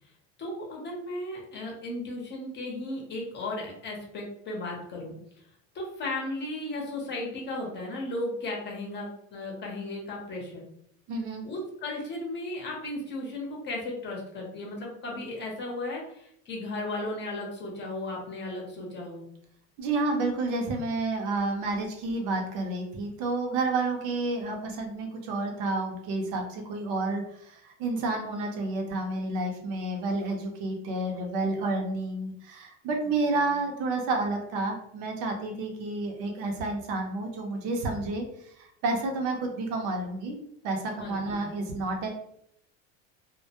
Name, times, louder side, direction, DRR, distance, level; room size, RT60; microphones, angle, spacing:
voice 1, 0.4-5.1 5.7-10.6 11.4-19.3 41.0-41.4, left 2 dB, 30° left, -1 dB, 0.7 m, -35 dB
voice 2, 11.1-11.5 19.8-38.2 38.6-40.4 40.6-42.1, right 2 dB, 65° right, 2 dB, 0.6 m, -30 dB
2.2 x 2.0 x 2.8 m, 0.73 s
cardioid pair, 140°, 35 cm